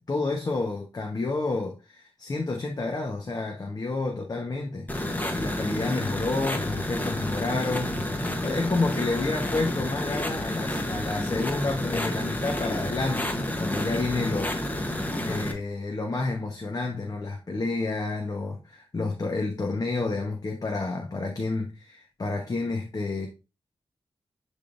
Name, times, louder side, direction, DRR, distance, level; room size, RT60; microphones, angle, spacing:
voice 1, 0.1-4.9 5.3-14.5 14.9-23.3, left 3 dB, 40° left, 1.1 m, -30 dB
sound 1, 4.9-15.5, left 1 dB, 20° left, 1.1 m, -30 dB
10.5 x 3.7 x 2.6 m
wide cardioid pair, 100°, 9 cm